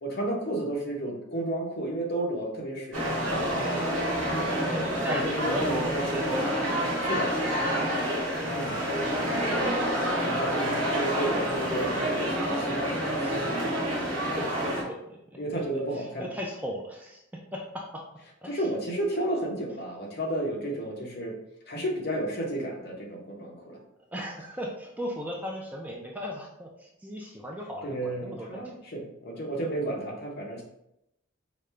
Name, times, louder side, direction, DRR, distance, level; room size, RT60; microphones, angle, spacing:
voice 1, 0.0-3.9 5.0-6.6 7.0-7.3 8.4-9.5 10.2-12.8 13.2-13.4 15.4-16.3 18.5-21.4 21.7-23.8 27.8-30.6, right 1 dB, 50° left, -1 dB, 0.9 m, -32 dB
sound 1, 2.9-14.8, equal, 80° right, 1.2 m, -28 dB
voice 2, 4.4-7.3 12.9-13.6 14.1-15.2 15.9-17.2 17.5-18.0 18.4-18.6 20.7-20.8 24.1-28.6, equal, 10° right, -1 dB, 0.4 m, -37 dB
5.0 x 2.2 x 3.2 m, 0.83 s
head